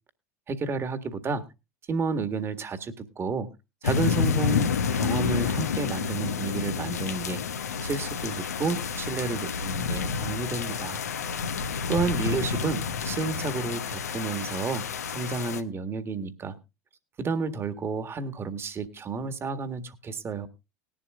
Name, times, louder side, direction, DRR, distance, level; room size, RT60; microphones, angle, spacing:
voice 1, 0.5-1.4 1.9-3.5 3.8-7.4 7.8-11.0 11.5-16.5 17.2-20.5, right 4 dB, 30° right, 10 dB, 1.7 m, -31 dB
sound 1, 3.8-15.6, left 6 dB, 80° left, 1.0 m, -29 dB
19.0 x 11.5 x 2.4 m, 0.27 s
hypercardioid pair, 80°, 8 cm